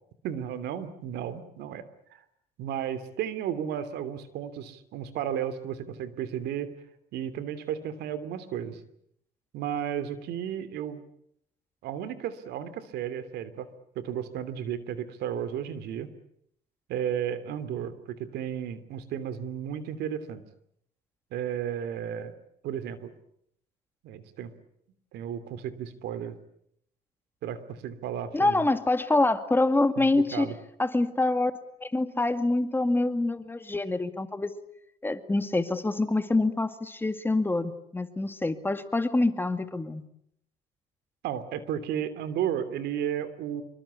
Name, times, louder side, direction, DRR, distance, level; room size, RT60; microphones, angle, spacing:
voice 1, 0.2-2.2 2.6-6.7 7.1-8.8 9.5-11.0 11.8-13.7 13.9-16.1 16.9-20.4 21.3-22.3 22.6-23.1 24.0-24.5 25.1-26.4 27.4-28.6 30.0-30.5 41.2-43.6, right 9 dB, 80° right, 12 dB, 2.9 m, -33 dB
voice 2, 28.3-30.5 30.8-31.5 31.8-34.5 35.0-40.0, left 2 dB, 10° left, 9 dB, 2.0 m, -26 dB
26.0 x 24.0 x 8.4 m, 0.73 s
cardioid pair, 110°, 17 cm